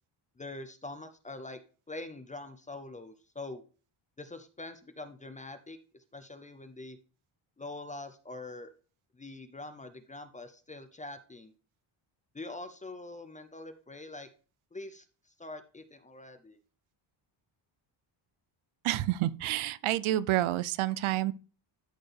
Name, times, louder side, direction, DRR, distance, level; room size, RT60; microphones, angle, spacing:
voice 1, 0.4-1.6 1.9-3.6 4.2-5.8 6.1-7.0 7.6-8.7 9.1-11.5 12.3-14.3 14.7-15.1 15.4-16.6, left 2 dB, 15° left, 0.5 m, -44 dB
voice 2, 18.8-21.3, right 14 dB, 75° right, 0.6 m, -29 dB
13.0 x 4.4 x 3.3 m
cardioid pair, 170°, 49 cm